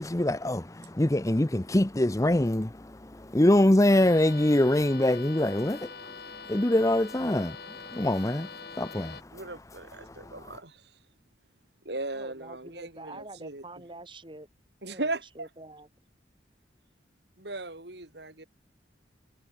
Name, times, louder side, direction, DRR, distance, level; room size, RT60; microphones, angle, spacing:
voice 1, 0.0-9.4 10.0-10.6, left 1 dB, 20° left, 0.8 m, -25 dB
sound 1, 3.9-9.2, left 5 dB, 60° left, 7.5 m, -44 dB
voice 2, 9.3-11.0 11.8-13.6 14.8-15.5 17.4-18.5, right 2 dB, 65° right, 4.3 m, -37 dB
voice 3, 12.1-14.5 14.8-15.9, right 2 dB, 25° right, 7.9 m, -46 dB
head